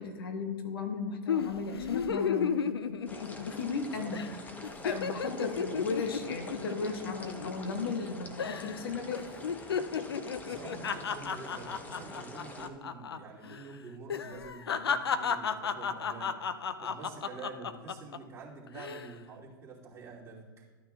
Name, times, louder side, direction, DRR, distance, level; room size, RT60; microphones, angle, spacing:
voice 1, 0.0-2.6 3.5-4.2 4.8-9.2, left 4 dB, 70° left, 4 dB, 1.4 m, -35 dB
sound 1, 1.3-3.8 4.1-4.3 4.6-8.1 8.4-8.8 9.1-13.2 13.4-13.6 14.1-18.2 18.7-19.1, left 7 dB, 90° left, 0.5 m, -33 dB
sound 2, 3.1-12.7, left 1 dB, 15° left, 1.0 m, -46 dB
voice 2, 3.9-4.4 10.4-16.4 16.8-20.6, right 4 dB, 20° right, -6 dB, 2.7 m, -47 dB
13.5 x 9.2 x 2.4 m, 1.4 s
hypercardioid pair, 110°, 13 cm